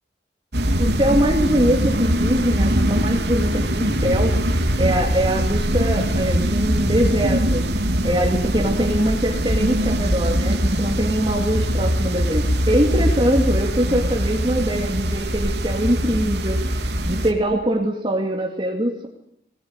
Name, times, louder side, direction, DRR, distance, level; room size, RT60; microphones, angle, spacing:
sound 1, 0.5-17.3, equal, 70° right, 3.3 m, -22 dB
voice 1, 0.8-4.4 4.8-7.6 8.0-19.1, right 1 dB, 25° right, 0 dB, 2.7 m, -23 dB
22.0 x 20.0 x 9.8 m, 0.79 s
head